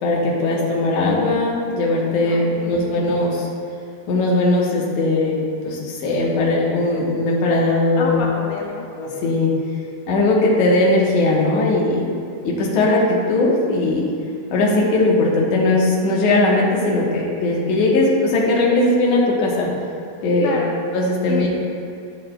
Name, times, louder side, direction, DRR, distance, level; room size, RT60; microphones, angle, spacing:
voice 1, 0.0-3.5 4.1-5.4 5.6-8.2 9.0-9.5 10.1-12.0 12.5-14.1 14.5-19.7 20.2-20.5 20.9-21.5, left 2 dB, 65° left, -3 dB, 2.1 m, -19 dB
voice 2, 2.2-3.0 8.0-8.9 20.4-20.8 21.3-21.5, left 5 dB, 85° left, -2 dB, 1.9 m, -28 dB
12.0 x 6.3 x 2.2 m, 2.5 s
omnidirectional pair, 4.4 m